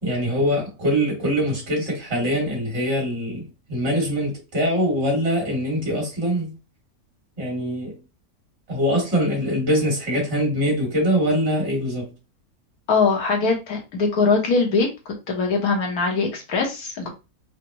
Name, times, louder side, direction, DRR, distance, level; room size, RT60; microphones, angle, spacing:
voice 1, 0.0-6.6 7.4-8.0 8.7-12.1, equal, 45° right, 2.5 m, -23 dB
voice 2, 12.9-14.9 15.3-17.1, left 4 dB, 85° left, 1.6 m, -21 dB
4.9 x 2.2 x 3.0 m
omnidirectional pair, 1.6 m